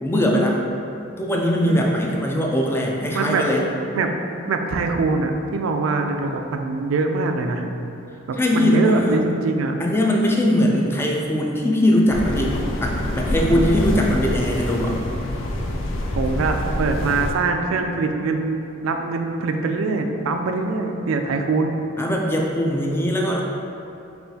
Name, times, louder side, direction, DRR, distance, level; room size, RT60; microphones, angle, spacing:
voice 1, 0.0-0.6 1.2-3.7 8.4-9.2 9.8-15.0 22.0-23.4, left 1 dB, 10° left, -1 dB, 0.3 m, -21 dB
voice 2, 1.6-2.1 3.1-3.6 3.9-4.1 4.5-7.7 8.3-9.7 13.4-13.6 16.1-21.8, right 3 dB, 80° right, 4 dB, 0.3 m, -23 dB
sound 1, 12.1-17.3, left 1 dB, 75° left, 0.4 m, -26 dB
5.5 x 2.4 x 2.7 m, 2.7 s
head